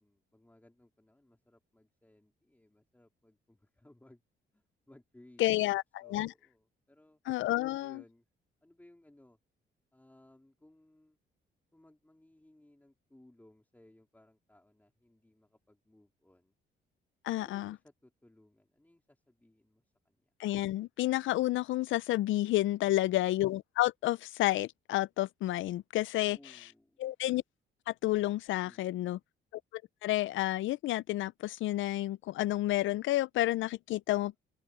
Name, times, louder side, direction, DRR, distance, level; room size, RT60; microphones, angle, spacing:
voice 1, 0.0-4.2 4.5-5.7 6.0-7.2 7.8-8.3 8.6-9.4 9.9-11.2 11.7-16.5 17.4-20.3 26.2-27.0, left 1 dB, 10° left, 3.5 m, -62 dB
voice 2, 5.4-6.3 7.3-8.0 17.2-17.7 20.4-26.4 27.0-27.4 27.9-29.2 30.0-34.4, left 16 dB, 75° left, 0.5 m, -30 dB
open air
cardioid pair, 90°, 20 cm